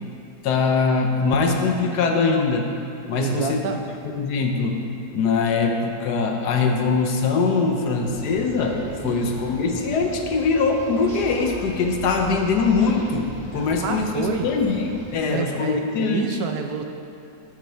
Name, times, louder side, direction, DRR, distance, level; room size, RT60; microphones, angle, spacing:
voice 1, 0.4-2.7 3.1-3.6 4.2-4.8 5.1-16.4, left 4 dB, 65° left, 3 dB, 1.2 m, -22 dB
voice 2, 3.2-3.8 9.0-9.3 13.6-14.5 15.3-16.8, right 6 dB, 70° right, 5 dB, 1.0 m, -28 dB
sound 1, 8.0-15.1, left 1 dB, 35° right, 1.8 m, -39 dB
12.0 x 5.5 x 4.4 m, 2.7 s
omnidirectional pair, 2.0 m